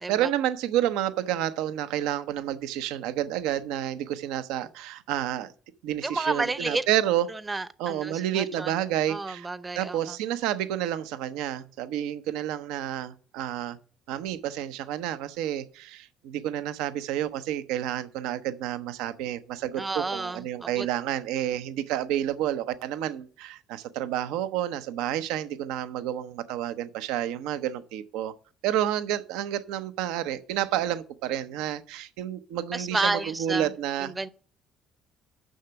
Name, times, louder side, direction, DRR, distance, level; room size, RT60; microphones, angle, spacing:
voice 1, 0.1-5.5 5.8-7.3 7.8-9.5 9.8-13.8 14.1-28.3 28.6-34.1, right 11 dB, 80° right, 0.6 m, -30 dB
voice 2, 6.0-6.8 7.3-8.7 9.1-10.2 19.8-20.9 32.7-33.7 34.0-34.3, right 3 dB, 25° right, 0.7 m, -31 dB
6.4 x 5.9 x 6.7 m
hypercardioid pair, 60°, 0 cm